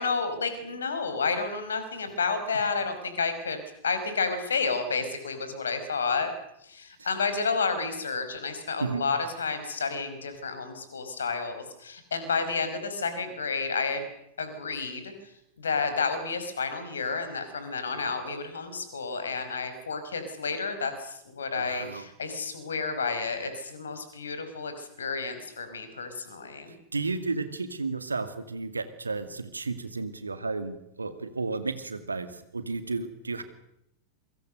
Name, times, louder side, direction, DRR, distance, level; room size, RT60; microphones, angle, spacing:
voice 1, 0.0-6.3 6.6-14.1 14.4-15.1 15.6-26.8, left 4 dB, 70° left, 9 dB, 5.3 m, -31 dB
voice 2, 21.5-22.1 26.9-33.4, right 3 dB, 80° right, 10 dB, 2.2 m, -33 dB
27.0 x 24.5 x 6.6 m, 0.80 s
figure-of-eight pair, 90°, 0 cm